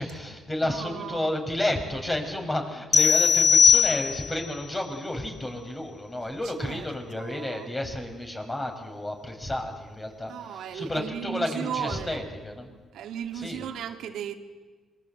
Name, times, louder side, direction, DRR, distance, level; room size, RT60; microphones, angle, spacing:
voice 1, 0.0-12.7 13.3-13.7, left 1 dB, 20° left, 4 dB, 5.4 m, -31 dB
voice 2, 0.6-1.3 6.6-6.9 7.1-7.7 10.3-12.3 12.9-14.3, right 9 dB, 80° right, 5 dB, 2.3 m, -35 dB
sound 1, 2.9-4.5, left 6 dB, 35° left, 1.4 m, -19 dB
26.5 x 22.5 x 8.0 m, 1.3 s
cardioid pair, 90°, 0 cm